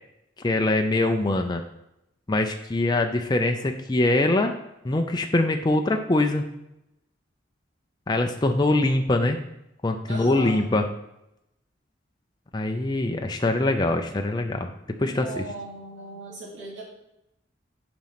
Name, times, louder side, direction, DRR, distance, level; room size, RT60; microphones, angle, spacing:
voice 1, 0.4-1.6 2.3-4.6 4.8-6.5 8.1-9.4 9.8-10.9 12.5-14.7 15.0-15.4, left 2 dB, 20° left, 4 dB, 0.5 m, -23 dB
voice 2, 10.1-10.6 14.9-16.8, right 2 dB, 75° right, -6 dB, 2.9 m, -37 dB
7.3 x 5.3 x 5.7 m, 0.85 s
head